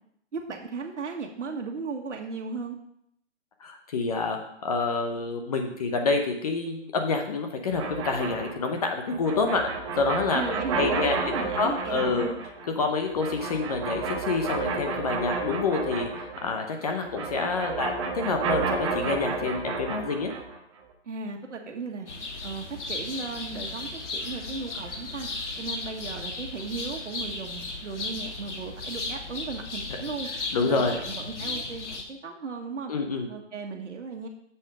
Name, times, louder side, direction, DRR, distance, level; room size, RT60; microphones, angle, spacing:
voice 1, 0.3-2.8 10.3-12.4 21.0-22.1 22.4-25.3 25.6-30.3 30.6-32.9 33.3-34.3, right 4 dB, 80° right, 2 dB, 1.5 m, -36 dB
voice 2, 3.6-9.7 10.0-10.4 10.8-12.3 12.8-20.3 30.5-31.0 32.9-33.3, left 4 dB, 30° left, 4 dB, 0.8 m, -27 dB
sound 1, 7.7-16.6 16.9-20.6, right 4 dB, 25° right, 1.0 m, -32 dB
sound 2, 22.1-32.0, left 3 dB, 75° left, 1.9 m, -35 dB
7.1 x 7.0 x 5.0 m, 0.73 s
hypercardioid pair, 160°, 36 cm